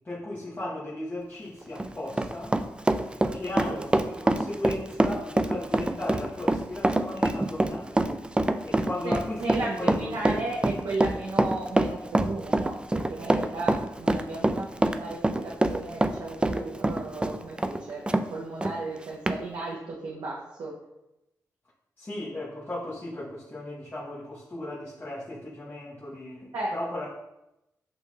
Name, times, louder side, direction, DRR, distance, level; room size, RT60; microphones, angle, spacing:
voice 1, 0.0-2.6 3.3-8.0 8.6-10.4 22.0-27.1, left 1 dB, 30° left, -7 dB, 1.0 m, -36 dB
Run, 1.6-18.3 18.6-18.7 19.3-19.4, right 1 dB, 15° right, 0.3 m, -25 dB
voice 2, 3.3-3.8 9.0-9.1 9.4-20.7 26.5-26.7, right 2 dB, 80° right, -3 dB, 0.7 m, -35 dB
7.8 x 2.9 x 2.3 m, 0.92 s
cardioid pair, 55°, 7 cm